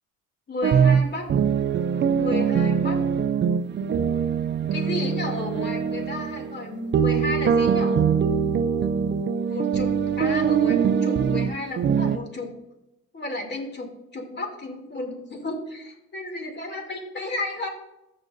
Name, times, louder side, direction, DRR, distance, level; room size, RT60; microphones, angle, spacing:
voice 1, 0.5-1.3 2.2-3.0 4.7-8.1 9.5-12.5 13.1-17.7, left 2 dB, 35° left, 2 dB, 2.6 m, -32 dB
sound 1, 0.6-12.2, right 7 dB, 35° right, 0.4 m, -23 dB
14.0 x 6.5 x 2.6 m, 0.93 s
cardioid pair, 90°, 32 cm